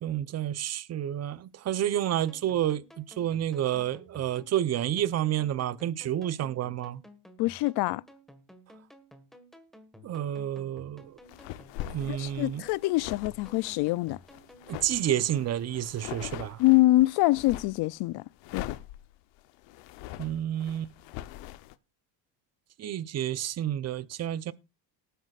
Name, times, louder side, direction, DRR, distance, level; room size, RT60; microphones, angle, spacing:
voice 1, 0.0-7.0 10.0-11.2 11.9-12.6 14.7-16.6 20.2-20.9 22.8-24.5, right 11 dB, 35° right, 0.8 m, -30 dB
sound 1, 2.3-15.5, equal, ahead, 1.6 m, -54 dB
voice 2, 7.4-8.0 12.1-14.2 16.6-18.2 18.5-18.7, left 18 dB, 60° left, 0.5 m, -25 dB
sound 2, 11.2-17.8 18.4-21.7, left 14 dB, 80° left, 1.0 m, -42 dB
19.0 x 9.1 x 2.4 m
cardioid pair, 130°, 44 cm